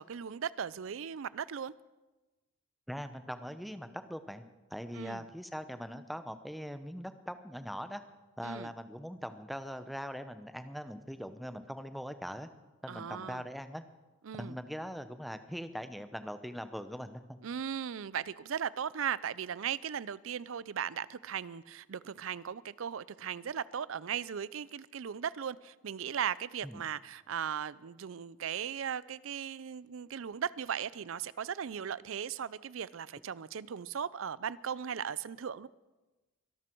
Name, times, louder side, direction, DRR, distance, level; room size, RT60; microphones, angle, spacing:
voice 1, 0.0-1.7 4.9-5.2 8.4-8.7 12.9-13.4 14.2-14.6 17.4-35.7, right 8 dB, 80° right, 0.5 m, -37 dB
voice 2, 2.9-4.4 4.7-8.0 8.4-12.5 12.8-13.8 14.3-17.4 26.6-26.8, equal, ahead, 0.7 m, -41 dB
23.5 x 12.5 x 4.6 m
head